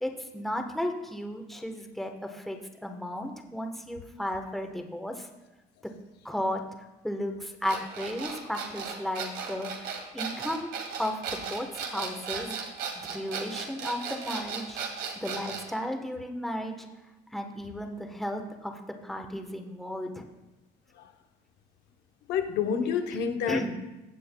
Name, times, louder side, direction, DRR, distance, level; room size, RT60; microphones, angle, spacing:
voice 1, 0.0-5.3 5.8-5.9 6.2-6.6 7.0-10.7 11.0-12.6 13.1-14.8 15.2-16.9 17.3-20.2 23.5-23.7, left 1 dB, ahead, 1.0 m, -34 dB
sound 1, 7.6-15.7, right 6 dB, 70° right, 1.9 m, -36 dB
voice 2, 22.3-23.7, left 7 dB, 80° left, 0.8 m, -29 dB
15.5 x 7.7 x 2.2 m
cardioid pair, 110°, 17 cm